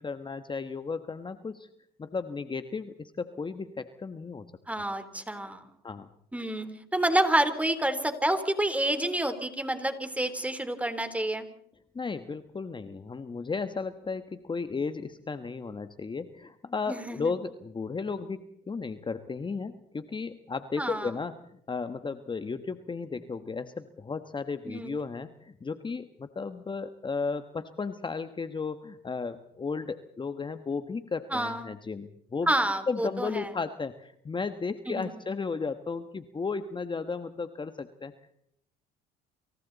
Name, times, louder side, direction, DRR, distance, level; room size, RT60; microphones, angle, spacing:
voice 1, 0.0-1.7 2.0-4.5 5.8-6.1 11.9-21.4 21.7-32.5 32.9-38.1, left 4 dB, 25° left, 10 dB, 1.4 m, -34 dB
voice 2, 4.7-5.6 6.3-6.7 6.9-11.5 16.9-17.3 20.8-21.1 24.7-25.0 31.3-31.7 32.5-33.5 34.9-35.1, right 1 dB, 5° right, 9 dB, 3.7 m, -28 dB
28.5 x 26.5 x 4.1 m, 0.72 s
supercardioid pair, 85°, 19 cm